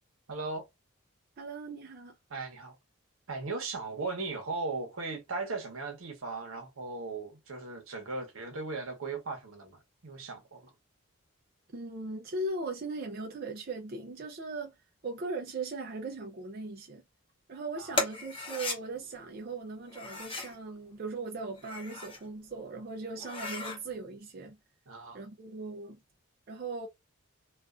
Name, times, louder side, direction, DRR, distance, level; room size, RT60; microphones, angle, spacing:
voice 1, 0.3-0.7 2.3-2.7 3.3-10.7 17.8-18.0 24.9-25.2, right 3 dB, 85° right, 0.9 m, -37 dB
voice 2, 1.4-2.2 11.7-14.8 15.0-17.0 17.5-24.6 25.1-26.0 26.5-26.9, right 3 dB, 45° right, 0.4 m, -39 dB
sound 1, 17.9-18.8 19.9-20.6 21.5-22.2 22.7-22.8 23.1-23.8, left 3 dB, 25° left, 0.6 m, -36 dB
2.4 x 2.4 x 2.3 m
head